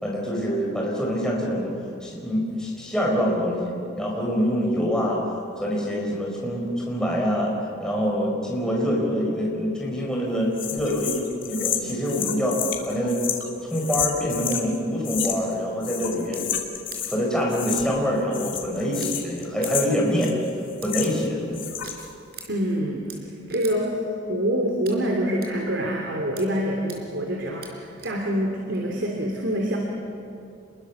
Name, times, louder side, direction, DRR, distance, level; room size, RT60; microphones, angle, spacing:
voice 1, 0.0-1.8 2.0-5.2 5.5-7.5 7.8-12.6 12.8-13.2 13.7-16.5 17.1-20.3 20.8-21.7, equal, 5° left, -3 dB, 4.8 m, -25 dB
sound 1, 10.6-14.7 15.0-15.6 15.8-17.2 17.5-18.1 18.3-21.3 21.5-22.1, left 9 dB, 85° left, 2.7 m, -30 dB
sound 2, 14.5-14.6 15.2-15.3 16.3-16.4 16.9-17.0 18.9-19.1 19.6-19.7 20.8-21.1 21.8-21.9 22.3-22.5 23.1-23.2 23.5-23.7 24.9-25.0 25.4-25.5 26.4-26.5 26.9-27.0 27.6-27.7 28.0-28.1 28.7-28.8, right 6 dB, 55° right, 4.1 m, -39 dB
voice 2, 22.5-29.8, equal, 75° right, 0 dB, 3.1 m, -26 dB
27.5 x 22.0 x 7.1 m, 2.5 s
head